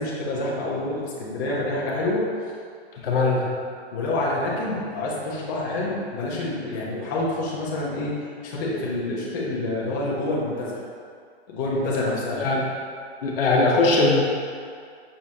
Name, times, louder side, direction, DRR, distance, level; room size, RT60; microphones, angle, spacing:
voice 1, 0.0-2.2 3.9-8.1 8.4-10.8 11.5-12.4, left 2 dB, 20° left, -6 dB, 0.5 m, -27 dB
voice 2, 3.0-3.5 12.4-12.6 13.2-14.2, left 3 dB, 55° left, -2 dB, 0.9 m, -20 dB
6.1 x 3.0 x 2.8 m, 2.2 s
hypercardioid pair, 160°, 33 cm